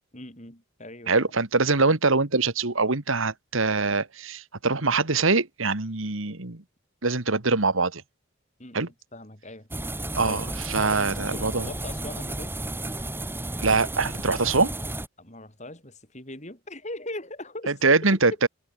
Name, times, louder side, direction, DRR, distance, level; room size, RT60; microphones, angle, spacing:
voice 1, 0.1-1.3 8.6-9.7 10.2-10.5 10.8-12.5 15.2-17.8, left 1 dB, 35° left, 6.4 m, -40 dB
voice 2, 1.1-6.6 7.0-8.0 8.7-8.9 10.2-11.7 13.6-14.7 17.8-18.5, right 3 dB, 70° right, 1.9 m, -23 dB
sound 1, 9.7-15.1, right 1 dB, 10° right, 2.9 m, -33 dB
head